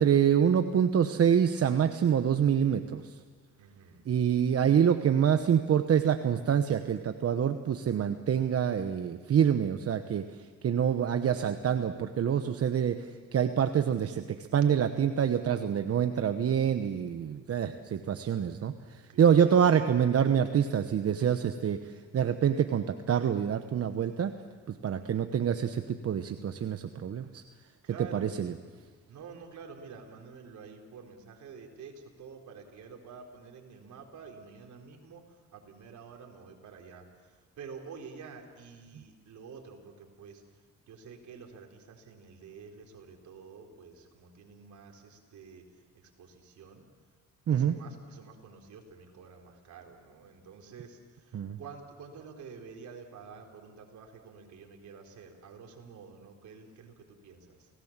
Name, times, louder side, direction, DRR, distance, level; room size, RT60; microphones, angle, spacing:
voice 1, 0.0-3.0 4.1-10.2 10.6-13.0 13.3-18.7 19.2-21.8 22.1-24.3 24.8-27.4 28.1-28.5 47.5-47.8 51.3-51.6, right 8 dB, 50° right, 8 dB, 1.0 m, -26 dB
voice 2, 3.6-4.0 19.1-19.6 25.0-25.2 27.8-28.4 29.1-40.4 40.9-45.6 45.9-46.8 47.5-57.7, right 5 dB, 70° right, 2 dB, 4.1 m, -49 dB
29.0 x 18.5 x 7.4 m, 1.5 s
cardioid pair, 90°, 30 cm